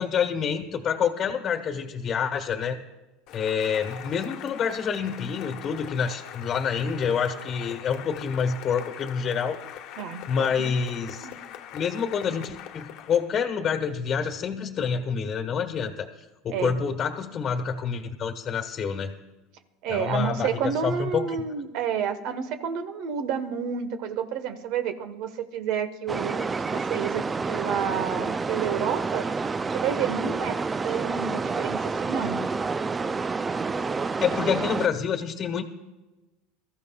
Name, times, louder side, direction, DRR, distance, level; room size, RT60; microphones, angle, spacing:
voice 1, 0.0-2.8 3.3-9.6 10.3-11.3 11.7-16.1 16.4-19.2 19.9-21.4 34.2-35.6, left 6 dB, 40° left, 4 dB, 1.3 m, -27 dB
Cheering / Applause, 3.3-13.3, left 11 dB, 60° left, 1.2 m, -42 dB
voice 2, 10.0-10.7 11.2-11.4 16.5-16.8 19.8-29.3 29.7-30.6 30.8-32.4 34.8-34.9, right 7 dB, 65° right, 9 dB, 1.2 m, -30 dB
sound 1, 26.1-34.9, right 4 dB, 20° right, 0.4 m, -29 dB
23.5 x 14.0 x 2.4 m, 1.1 s
supercardioid pair, 105°, 0 cm